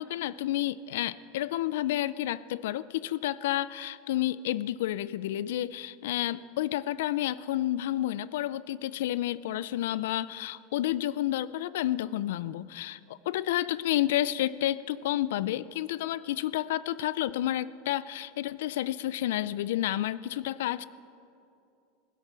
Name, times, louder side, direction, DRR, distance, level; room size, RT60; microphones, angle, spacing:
voice 1, 0.0-20.8, left 13 dB, 85° left, 19 dB, 0.4 m, -30 dB
16.0 x 12.0 x 6.1 m, 2.7 s
supercardioid pair, 165°, 0 cm